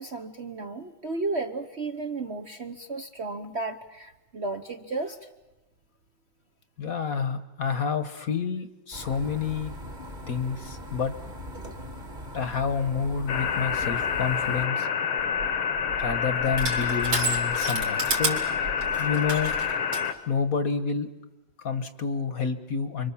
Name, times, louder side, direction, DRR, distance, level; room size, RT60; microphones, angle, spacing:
voice 1, 0.0-5.3, right 3 dB, 45° right, 4 dB, 1.0 m, -33 dB
voice 2, 6.8-9.7 10.3-11.1 12.3-14.9 16.0-18.4 19.0-19.5 20.3-21.1 21.6-23.1, left 6 dB, 50° left, 10 dB, 1.4 m, -29 dB
sound 1, 8.9-14.7, equal, 25° right, 1.9 m, -40 dB
sound 2, 13.3-20.1, left 7 dB, 80° left, 1.9 m, -28 dB
Crushing, 15.2-20.1, right 3 dB, 75° right, 4.4 m, -32 dB
30.0 x 24.5 x 7.2 m, 1.0 s
omnidirectional pair, 2.2 m